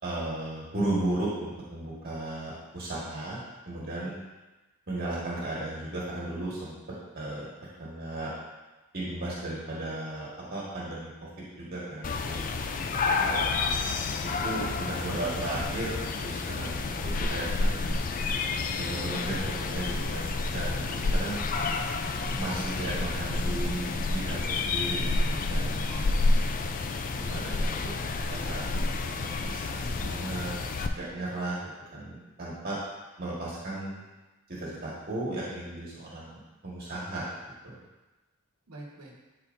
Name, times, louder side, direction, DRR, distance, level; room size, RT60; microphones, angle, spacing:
voice 1, 0.0-3.4 3.7-4.1 4.9-6.7 7.1-7.5 7.8-8.3 8.9-11.3 11.5-13.4 14.2-17.9 18.8-21.4 22.3-25.9 27.2-27.9 28.3-28.6 29.2-30.5 30.9-31.6 31.9-32.8 33.2-34.0 34.5-37.8, right 2 dB, 45° right, -7 dB, 1.5 m, -35 dB
sound 1, 12.0-30.9, left 3 dB, 35° left, 0.4 m, -29 dB
voice 2, 25.9-27.2 38.7-39.1, right 2 dB, 80° right, -1 dB, 1.3 m, -47 dB
11.0 x 4.4 x 2.6 m, 1.1 s
head